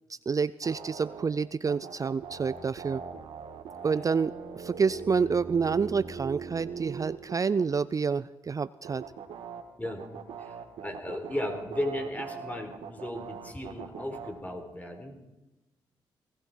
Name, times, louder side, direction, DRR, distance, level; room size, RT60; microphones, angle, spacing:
voice 1, 0.1-3.0 3.8-9.0, right 5 dB, 35° right, 17 dB, 0.4 m, -28 dB
sound 1, 0.6-1.3 1.6-7.6 8.8-14.3, right 7 dB, 85° right, 2.0 m, -41 dB
voice 2, 10.4-15.2, left 1 dB, 15° left, 4 dB, 4.4 m, -35 dB
18.5 x 16.0 x 4.5 m, 1.1 s
supercardioid pair, 55°, 10 cm